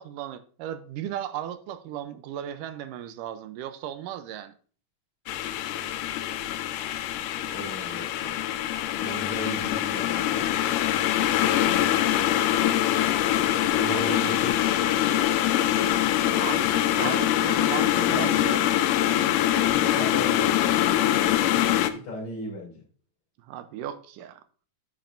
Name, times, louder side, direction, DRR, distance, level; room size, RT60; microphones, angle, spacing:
voice 1, 0.0-4.5 13.9-14.2 16.3-18.8 23.5-24.4, right 11 dB, 80° right, 2.2 m, -36 dB
sound 1, 5.3-21.9, left 12 dB, 80° left, 2.0 m, -24 dB
voice 2, 7.4-8.3 9.0-10.7 11.5-11.9 13.7-14.5 14.9-15.1 16.9-17.1 17.5-18.4 19.7-20.5 21.8-22.8, left 1 dB, 50° left, 4.1 m, -36 dB
9.2 x 8.6 x 2.6 m
omnidirectional pair, 4.0 m